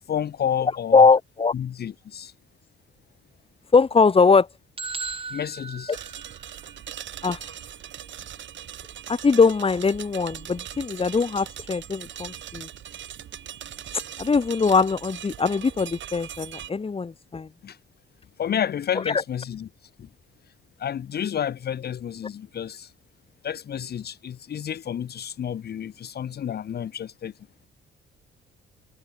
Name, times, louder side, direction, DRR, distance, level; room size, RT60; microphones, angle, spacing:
voice 1, 0.1-1.0 1.5-2.3 5.3-5.9 17.6-17.8 18.4-19.7 20.0-20.1 20.8-22.9 23.4-27.3, left 9 dB, 55° left, 1.3 m, -30 dB
voice 2, 0.9-1.5 3.7-4.5 5.9-6.0 7.2-7.4 9.1-12.7 14.2-17.5 19.1-19.2, left 4 dB, 30° left, 1.9 m, -21 dB
sound 1, 4.8-6.7, right 4 dB, 25° right, 3.0 m, -36 dB
sound 2, 5.9-16.7, right 10 dB, 70° right, 7.1 m, -40 dB
cardioid pair, 90°, 20 cm